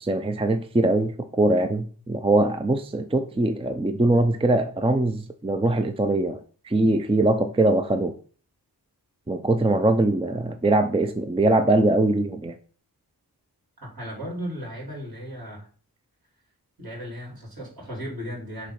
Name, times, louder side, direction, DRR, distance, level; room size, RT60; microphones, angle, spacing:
voice 1, 0.0-8.1 9.3-12.6, right 2 dB, 15° right, 8 dB, 0.5 m, -22 dB
voice 2, 13.8-15.7 16.8-18.7, equal, 60° right, -3 dB, 3.5 m, -35 dB
6.5 x 3.1 x 5.8 m, 0.41 s
wide cardioid pair, 60°, 38 cm